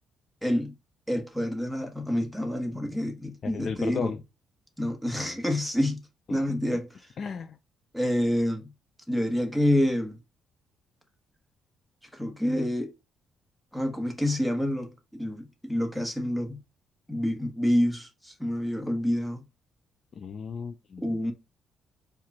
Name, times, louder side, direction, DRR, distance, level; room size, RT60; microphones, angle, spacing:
voice 1, 0.4-0.7 1.1-4.1 4.8-6.0 6.3-6.9 7.9-8.7 9.1-10.2 12.1-12.9 13.7-16.6 17.1-19.4 21.0-21.3, left 1 dB, ahead, 1.2 m, -27 dB
voice 2, 3.4-4.2 6.3-6.4 7.2-7.6 20.1-21.2, left 6 dB, 50° left, 0.4 m, -34 dB
4.8 x 2.3 x 4.1 m
cardioid pair, 90°, 0 cm